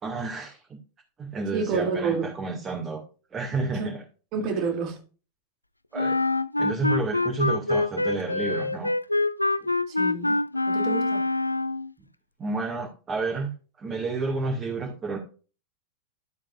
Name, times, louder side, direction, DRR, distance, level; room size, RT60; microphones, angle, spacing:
voice 1, 0.0-0.8 1.2-3.0 3.3-4.0 4.5-4.6 5.9-6.2 6.6-8.9 9.6-9.8 12.4-13.5 13.8-15.2, right 3 dB, 20° right, 2.0 m, -30 dB
voice 2, 1.5-2.3 3.7-3.9 4.3-5.0 9.9-10.4 10.7-11.2, right 4 dB, 40° right, 2.7 m, -28 dB
Wind instrument woodwind instrument, 6.0-11.9, left 2 dB, 85° left, 0.3 m, -25 dB
12.5 x 7.3 x 2.5 m
figure-of-eight pair, 90°, 0 cm